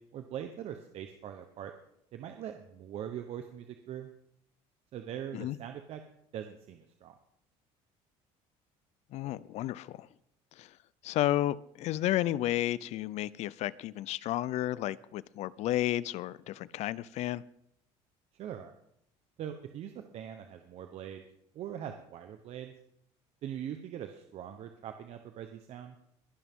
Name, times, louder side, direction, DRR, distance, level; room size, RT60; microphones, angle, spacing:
voice 1, 0.1-1.7 2.1-4.1 4.9-6.0 6.3-7.1 18.3-18.7 19.4-21.2 21.5-22.7 23.4-26.0, right 10 dB, 55° right, 6 dB, 1.0 m, -42 dB
voice 2, 9.1-10.1 10.6-10.7 11.0-17.4, left 14 dB, 60° left, 20 dB, 0.5 m, -32 dB
21.5 x 11.0 x 3.7 m, 0.75 s
cardioid pair, 115°, 13 cm